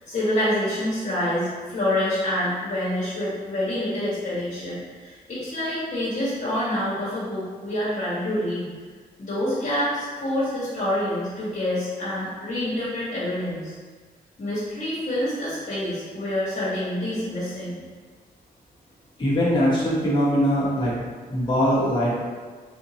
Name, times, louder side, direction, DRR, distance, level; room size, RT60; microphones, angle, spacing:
voice 1, 0.0-8.7 9.2-13.7 14.4-17.8, left 1 dB, 50° left, -10 dB, 1.2 m, -27 dB
voice 2, 19.2-20.9 21.3-22.3, equal, 30° left, -7 dB, 1.0 m, -21 dB
3.8 x 2.7 x 2.8 m, 1.5 s
cardioid pair, 95°, 16 cm